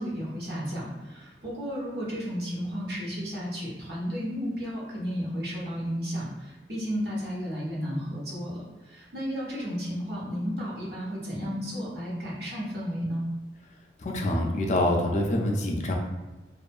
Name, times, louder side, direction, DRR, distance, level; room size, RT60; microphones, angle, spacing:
voice 1, 0.0-8.6 8.8-13.2, equal, 65° right, -5 dB, 0.9 m, -33 dB
voice 2, 14.0-15.9, left 1 dB, 40° left, 1 dB, 0.4 m, -25 dB
2.6 x 2.4 x 2.3 m, 1.2 s
head